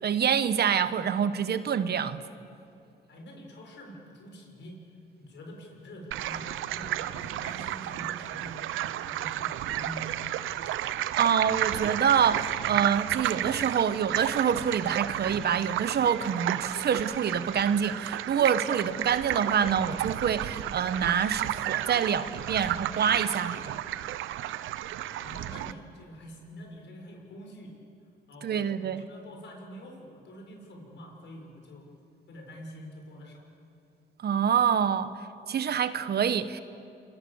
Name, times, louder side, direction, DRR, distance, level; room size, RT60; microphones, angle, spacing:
voice 1, 0.0-2.2 10.8-23.8 28.4-29.1 34.2-35.1 35.5-36.6, right 8 dB, 55° right, 12 dB, 1.2 m, -26 dB
voice 2, 3.1-4.8 5.2-10.1 25.2-27.7 28.3-31.9 32.3-33.4, equal, 65° left, 1 dB, 6.4 m, -46 dB
sound 1, 6.1-25.7, right 13 dB, 85° right, 0.8 m, -32 dB
28.0 x 23.5 x 7.2 m, 2.5 s
cardioid pair, 90°, 20 cm